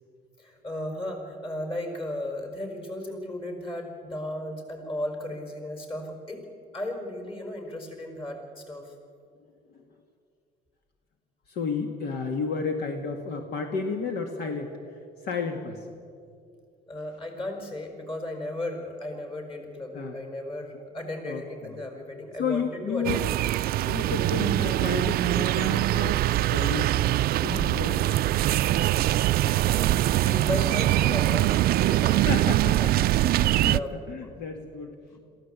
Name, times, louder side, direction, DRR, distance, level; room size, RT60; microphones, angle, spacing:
voice 1, 0.4-6.4 6.7-8.9 16.9-23.3 29.1-29.2 29.7-32.7 33.7-33.9 34.2-34.3 35.1-35.2, left 1 dB, 30° left, 3 dB, 5.2 m, -35 dB
voice 2, 11.5-16.0 19.9-20.2 20.7-20.8 21.2-21.8 22.4-23.3 23.9-28.2 32.1-35.0, left 5 dB, 75° left, 4 dB, 1.8 m, -32 dB
sound 1, 23.0-33.8, right 14 dB, 65° right, 0.4 m, -23 dB
22.0 x 15.5 x 8.2 m, 2.4 s
cardioid pair, 110°, 17 cm